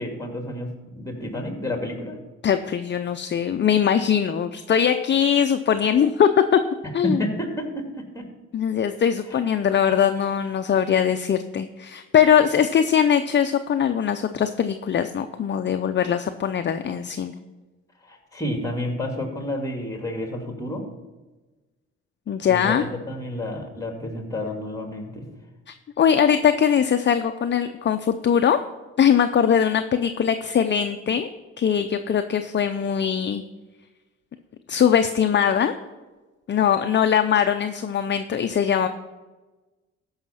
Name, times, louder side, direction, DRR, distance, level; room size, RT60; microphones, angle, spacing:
voice 1, 0.0-2.2 7.0-7.9 8.1-8.2 9.3-9.4 18.0-20.8 22.5-25.3, left 1 dB, 10° left, 3 dB, 2.3 m, -30 dB
voice 2, 2.4-6.6 6.9-7.2 8.5-17.3 22.3-22.8 25.7-28.6 29.0-31.3 31.6-33.4 34.7-35.7 36.5-38.9, left 8 dB, 40° left, 8 dB, 0.6 m, -21 dB
14.0 x 5.6 x 5.7 m, 1.2 s
cardioid pair, 90°, 30 cm